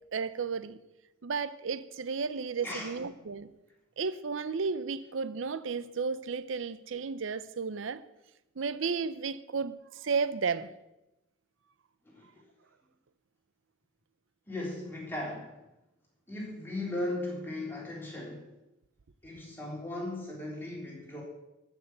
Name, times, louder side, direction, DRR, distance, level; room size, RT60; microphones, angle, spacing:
voice 1, 0.1-0.8 1.2-3.5 4.0-8.0 8.6-10.7, right 5 dB, 80° right, 0.6 m, -33 dB
voice 2, 2.6-3.0 12.1-12.4 14.5-15.6 16.3-18.5 19.2-21.2, left 1 dB, 10° left, 3.5 m, -37 dB
13.5 x 6.3 x 8.0 m
head